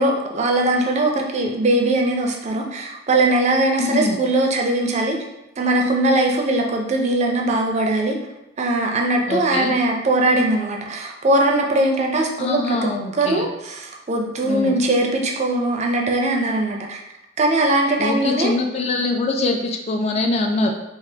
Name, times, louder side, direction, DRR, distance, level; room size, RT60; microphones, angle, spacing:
voice 1, 0.0-5.2 5.6-8.2 8.6-12.9 13.2-13.5 14.1-17.0 17.4-18.5, right 2 dB, 35° right, 1 dB, 0.4 m, -20 dB
voice 2, 3.8-4.2 9.3-9.8 12.4-13.5 14.4-14.8 18.0-20.7, left 2 dB, 35° left, 3 dB, 0.3 m, -23 dB
3.3 x 2.4 x 2.7 m, 0.95 s
head